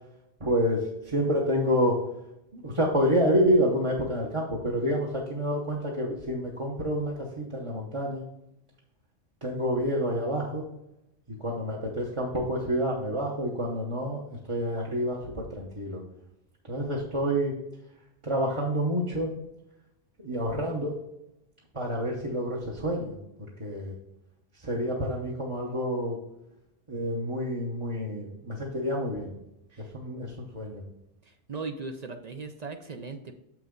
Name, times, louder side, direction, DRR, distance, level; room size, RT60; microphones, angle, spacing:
voice 1, 0.4-2.0 2.5-8.2 9.4-10.7 11.4-16.0 16.7-17.6 18.2-19.3 20.2-20.9 21.7-24.0 24.6-26.2 26.9-29.3 29.8-30.8, equal, 30° right, -3 dB, 0.9 m, -28 dB
voice 2, 31.3-33.3, right 4 dB, 50° right, 6 dB, 0.5 m, -38 dB
6.8 x 6.0 x 3.8 m, 0.87 s
omnidirectional pair, 1.1 m